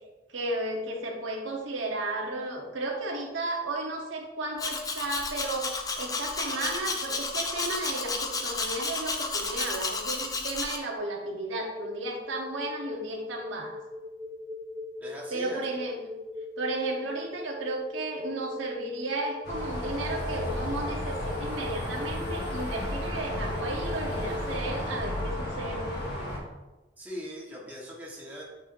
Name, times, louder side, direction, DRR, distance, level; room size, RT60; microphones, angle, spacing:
voice 1, 0.3-13.8 15.3-16.0 16.6-26.4, right 2 dB, 85° right, 0 dB, 1.2 m, -34 dB
Domestic sounds home sounds, 4.6-10.8, left 3 dB, 20° left, 0.5 m, -32 dB
sound 1, 11.6-25.3, left 3 dB, 30° right, 1.3 m, -39 dB
voice 2, 15.0-15.6 27.0-28.4, equal, 10° right, -5 dB, 1.3 m, -41 dB
sound 2, 19.4-26.4, left 1 dB, 55° left, 1.5 m, -33 dB
9.0 x 4.5 x 2.6 m, 1.1 s
head